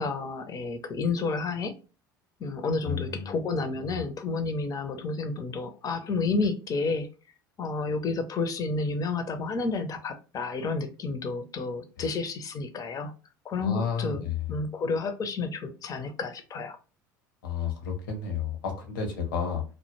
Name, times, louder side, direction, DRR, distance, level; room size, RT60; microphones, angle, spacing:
voice 1, 0.0-1.7 2.4-7.1 7.6-13.1 13.4-16.8, left 3 dB, 35° left, 0.5 m, -30 dB
voice 2, 2.8-3.9 13.6-14.5 17.4-19.6, left 6 dB, 75° left, 0.7 m, -32 dB
2.1 x 2.1 x 3.0 m
hypercardioid pair, 70°, 11 cm